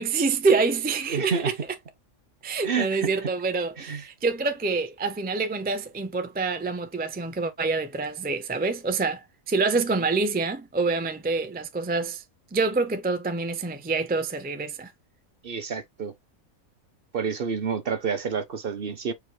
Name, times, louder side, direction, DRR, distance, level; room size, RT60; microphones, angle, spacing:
voice 1, 0.0-1.5 2.4-12.2 12.5-14.9, right 4 dB, 15° right, 0.4 m, -26 dB
voice 2, 1.1-1.5 2.6-3.1 3.8-4.0 15.4-16.1 17.1-19.1, right 6 dB, 50° right, 0.8 m, -29 dB
5.0 x 2.1 x 4.6 m
omnidirectional pair, 1.5 m